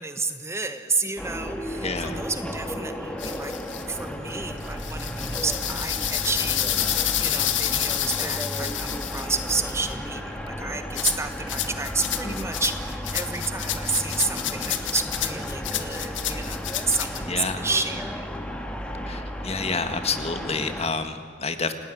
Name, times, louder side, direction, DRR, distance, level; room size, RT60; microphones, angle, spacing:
voice 1, 0.0-3.5 3.9-18.3, right 4 dB, 15° right, 9 dB, 1.2 m, -31 dB
sound 1, 1.2-20.9, equal, 5° left, 2.1 m, -34 dB
voice 2, 1.8-2.2 12.2-12.5 17.3-17.6 19.1-21.7, left 4 dB, 35° left, 8 dB, 1.8 m, -29 dB
sound 2, 3.2-3.8 4.6-9.9 11.0-17.2, left 12 dB, 90° left, 1.9 m, -29 dB
29.0 x 19.0 x 9.3 m, 2.2 s
head